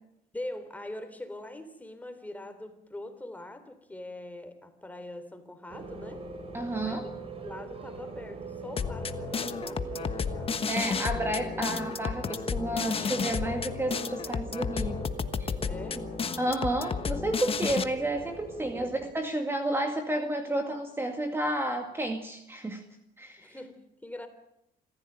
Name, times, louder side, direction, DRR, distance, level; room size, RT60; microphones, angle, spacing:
voice 1, 0.3-6.2 6.8-7.1 7.4-10.7 15.6-16.1 18.7-19.0 23.4-24.3, left 1 dB, 10° left, 9 dB, 3.6 m, -43 dB
sound 1, 5.7-19.1, right 3 dB, 35° right, 4.7 m, -42 dB
voice 2, 6.5-7.1 10.7-15.0 15.4-15.5 16.4-22.8 23.2-23.6, right 1 dB, 15° right, 5 dB, 2.2 m, -31 dB
sound 2, 8.8-17.8, left 6 dB, 35° left, 1.3 m, -32 dB
26.5 x 15.0 x 9.1 m, 0.80 s
cardioid pair, 110°, 17 cm